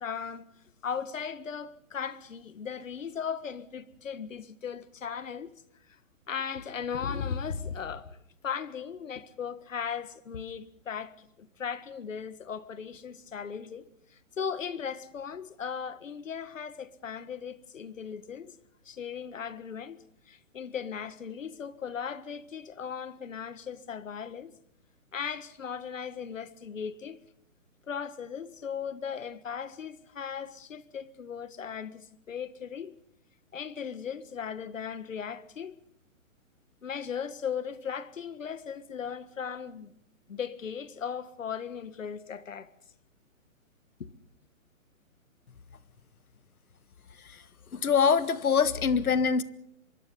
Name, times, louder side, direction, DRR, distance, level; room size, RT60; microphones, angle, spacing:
voice 1, 0.0-0.4 0.8-5.5 6.3-8.2 8.4-13.9 14.1-18.5 18.8-20.0 20.3-24.5 25.1-27.2 27.9-32.9 33.5-35.7 36.8-39.9 40.3-42.7 44.0-44.1, left 7 dB, 65° left, 1.7 m, -37 dB
voice 2, 47.7-49.4, left 6 dB, 85° left, 1.7 m, -24 dB
24.5 x 22.5 x 5.6 m
hypercardioid pair, 180°, 42 cm